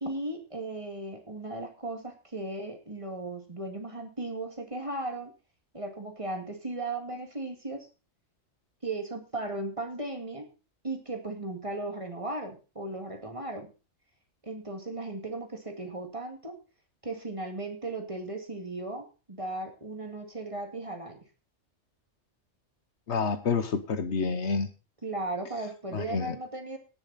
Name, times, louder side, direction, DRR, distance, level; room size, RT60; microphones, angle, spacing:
voice 1, 0.0-5.3 5.7-7.9 8.8-10.5 10.8-13.7 14.4-16.6 17.0-21.2 23.5-23.6 25.0-26.8, right 2 dB, 25° right, 4 dB, 2.1 m, -36 dB
voice 2, 23.1-24.7 25.9-26.3, left 5 dB, 70° left, 11 dB, 1.3 m, -28 dB
17.5 x 7.0 x 4.1 m, 0.33 s
omnidirectional pair, 1.2 m